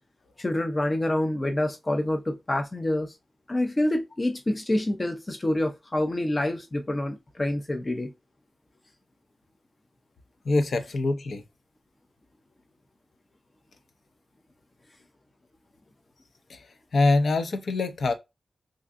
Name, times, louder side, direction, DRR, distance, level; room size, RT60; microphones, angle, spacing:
voice 1, 0.4-3.1 3.5-8.1, left 1 dB, 25° left, 0.5 m, -27 dB
voice 2, 10.4-11.4 16.5-16.6 16.9-18.1, left 2 dB, 70° left, 0.6 m, -24 dB
3.5 x 2.6 x 2.4 m
wide cardioid pair, 145°, 0 cm